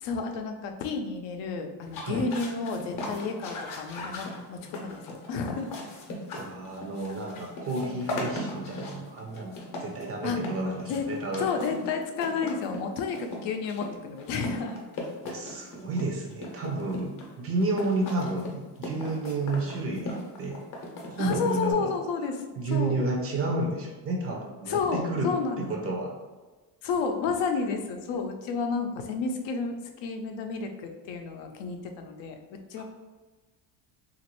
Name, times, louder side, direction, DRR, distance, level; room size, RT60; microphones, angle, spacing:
voice 1, 0.0-5.7 10.2-10.4 10.9-11.1 11.4-14.8 21.2-22.3 22.7-23.0 24.7-25.9 26.8-32.8, left 5 dB, 85° left, 5 dB, 0.6 m, -31 dB
sound 1, 1.8-21.7, left 1 dB, 50° left, 0.7 m, -39 dB
voice 2, 6.3-9.5 9.8-11.5 15.2-20.6 21.1-21.9 22.6-25.3 25.6-26.2 32.8-32.9, right 2 dB, 35° right, 1 dB, 0.4 m, -31 dB
3.0 x 2.5 x 3.0 m, 1.3 s
cardioid pair, 155°, 43 cm